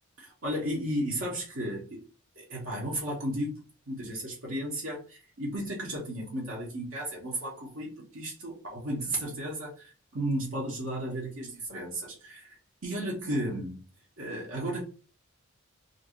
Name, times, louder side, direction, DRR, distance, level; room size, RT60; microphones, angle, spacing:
voice 1, 0.2-2.0 2.3-3.5 3.9-12.5 12.8-13.8 14.2-14.8, right 1 dB, 65° right, 1.4 m, -34 dB
3.2 x 2.6 x 3.1 m
head